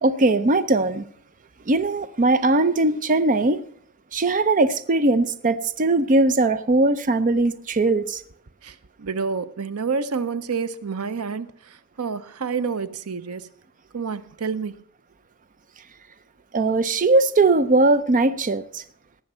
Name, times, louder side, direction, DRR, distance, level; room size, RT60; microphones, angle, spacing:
voice 1, 0.0-1.0 1.7-3.6 4.1-8.2 16.5-18.8, right 2 dB, 35° right, 0.6 m, -20 dB
voice 2, 8.6-13.5 13.9-14.7, right 5 dB, 90° right, 0.7 m, -29 dB
18.5 x 7.1 x 5.5 m
head